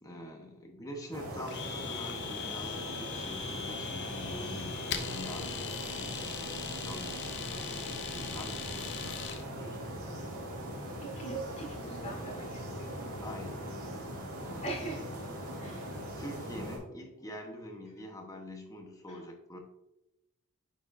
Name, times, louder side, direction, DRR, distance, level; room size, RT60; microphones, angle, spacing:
voice 1, 0.0-9.9 13.2-13.7 14.4-14.8 16.2-19.6, left 1 dB, 15° left, 2 dB, 1.0 m, -45 dB
sound 1, 1.1-16.8, equal, 80° right, 2.3 m, -40 dB
Domestic sounds home sounds, 1.5-9.4, left 7 dB, 50° left, 0.6 m, -40 dB
voice 2, 11.0-13.1 14.6-15.0 15.6-15.8, right 2 dB, 30° left, -1 dB, 2.1 m, -41 dB
9.0 x 5.0 x 2.6 m, 0.93 s
head